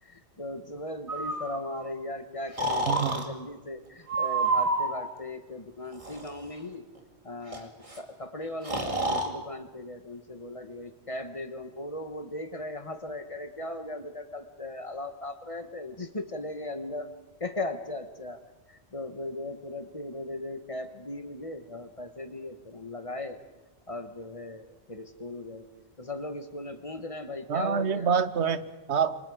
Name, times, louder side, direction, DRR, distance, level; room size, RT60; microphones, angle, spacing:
voice 1, 0.0-6.9 7.2-17.1 17.4-18.4 18.7-23.4 23.9-25.7 26.0-28.1, left 2 dB, 30° left, 8 dB, 1.3 m, -38 dB
Breathing, 1.1-1.9 2.6-3.3 4.1-5.0 5.9-6.3 7.5-7.6 7.8-8.0 8.6-9.3, right 2 dB, 30° right, 2.3 m, -28 dB
voice 2, 2.9-3.2 27.5-29.2, right 6 dB, 80° right, 13 dB, 1.2 m, -26 dB
28.0 x 24.5 x 4.9 m, 1.1 s
omnidirectional pair, 1.1 m